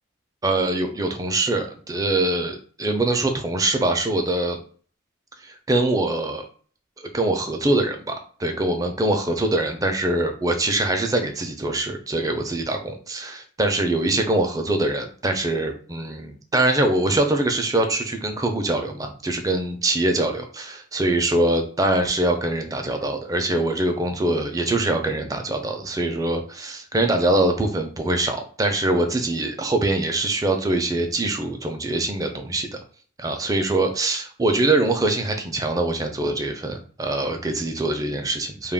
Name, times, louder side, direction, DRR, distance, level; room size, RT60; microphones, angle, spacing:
voice 1, 0.4-4.6 5.4-6.4 7.1-8.1 8.4-32.8 33.2-38.7, right 2 dB, 20° right, 4 dB, 0.4 m, -23 dB
2.3 x 2.1 x 3.5 m, 0.44 s
head